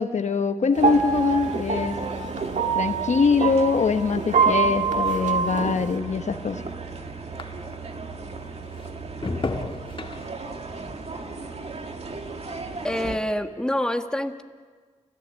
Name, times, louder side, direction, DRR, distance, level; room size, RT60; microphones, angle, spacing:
voice 1, 0.0-2.0 2.7-6.6, left 5 dB, 70° left, 8 dB, 1.0 m, -23 dB
sound 1, 0.7-6.0, right 5 dB, 80° right, 1.5 m, -25 dB
sound 2, 0.8-13.2, right 3 dB, 55° right, 2.2 m, -35 dB
sound 3, 6.6-8.0 8.4-12.9 13.2-13.7, left 3 dB, 40° left, 1.4 m, -39 dB
voice 2, 12.8-14.4, left 1 dB, 5° left, 5 dB, 1.8 m, -26 dB
29.5 x 14.0 x 8.1 m, 1.6 s
cardioid pair, 50°, 13 cm